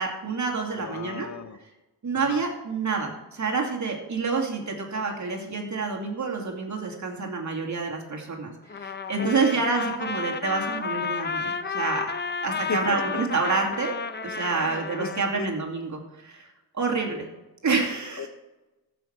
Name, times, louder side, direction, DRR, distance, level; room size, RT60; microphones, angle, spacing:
voice 1, 0.0-1.3 2.0-12.1 12.4-13.9 14.2-16.5 16.7-17.3 17.6-18.3, right 4 dB, 45° right, 0 dB, 2.5 m, -28 dB
voice 2, 0.7-1.6 2.2-2.4 9.2-9.9 12.7-13.2 14.5-15.5 18.2-18.3, left 5 dB, 45° left, 10 dB, 1.1 m, -36 dB
Trumpet, 8.7-15.2, left 5 dB, 25° left, 0.7 m, -32 dB
14.5 x 6.1 x 4.5 m, 1.1 s
cardioid pair, 80°, 39 cm